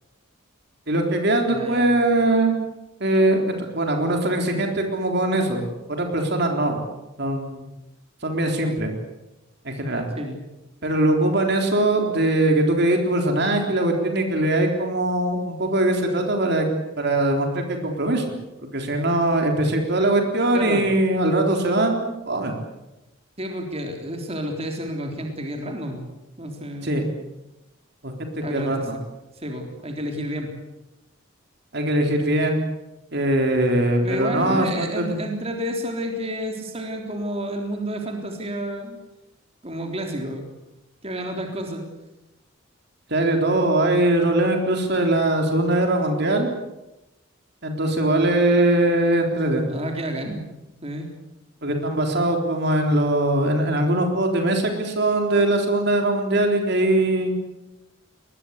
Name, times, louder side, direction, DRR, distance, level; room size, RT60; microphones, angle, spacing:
voice 1, 0.9-2.6 3.0-6.8 7.2-7.6 8.2-8.9 9.6-10.0 10.8-16.7 17.0-18.3 18.7-22.6 26.8-27.0 28.0-29.0 31.7-32.6 33.1-35.2 43.1-46.5 47.6-49.6 51.6-57.3, right 1 dB, 55° right, 3 dB, 3.8 m, -21 dB
voice 2, 1.5-1.9 9.8-10.4 20.5-20.9 23.4-26.1 26.4-27.2 28.4-28.9 29.4-30.5 34.0-39.0 39.6-40.5 41.0-41.8 49.7-50.4 50.8-51.1, equal, 30° right, 3 dB, 3.6 m, -30 dB
23.0 x 20.5 x 8.2 m, 0.96 s
head